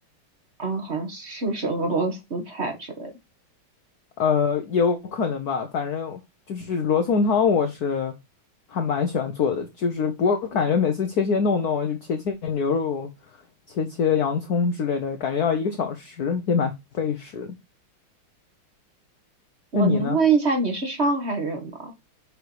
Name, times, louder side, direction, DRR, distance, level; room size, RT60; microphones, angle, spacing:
voice 1, 0.6-3.1 19.7-21.9, right 4 dB, 30° right, 1.8 m, -25 dB
voice 2, 4.2-6.2 6.5-8.1 8.7-13.1 13.7-17.6 19.7-20.2, left 5 dB, 55° left, 1.3 m, -24 dB
6.7 x 4.9 x 4.7 m
omnidirectional pair, 2.3 m